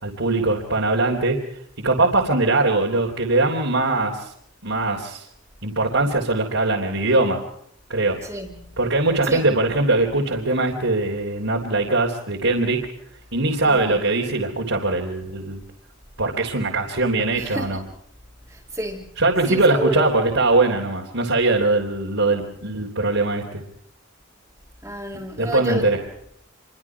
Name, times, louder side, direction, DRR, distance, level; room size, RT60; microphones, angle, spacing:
voice 1, 0.0-1.4 1.8-4.3 4.6-5.2 5.6-7.4 7.9-8.2 8.8-12.8 13.3-15.6 16.2-17.8 19.2-23.6 25.4-26.0, right 2 dB, 65° right, 3.5 m, -21 dB
voice 2, 8.2-8.7 9.2-9.4 13.6-14.0 17.3-17.8 18.5-19.0 19.4-20.1 24.8-25.9, equal, 10° right, 2.6 m, -30 dB
28.0 x 24.0 x 4.8 m
head